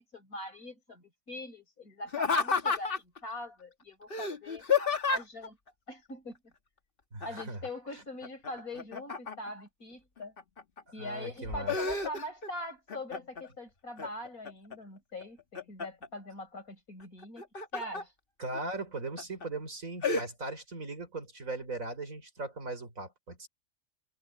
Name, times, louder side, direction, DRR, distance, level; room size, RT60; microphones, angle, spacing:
voice 1, 0.0-5.6 5.9-6.5 7.2-10.3 10.9-17.5 17.7-18.1, left 1 dB, 70° left, 7.1 m, -42 dB
Laughter, 2.1-3.2 4.1-5.5 7.2-7.7 8.0-9.6 10.2-10.8 11.2-12.5 12.9-13.5 14.0-14.8 15.2-16.1 17.2-18.0 18.5-18.6 19.2-19.5 20.0-20.3, left 5 dB, 40° left, 1.6 m, -31 dB
voice 2, 7.1-7.6 7.9-8.0 11.0-11.8 18.4-23.5, right 2 dB, 60° right, 4.9 m, -39 dB
omnidirectional pair, 1.6 m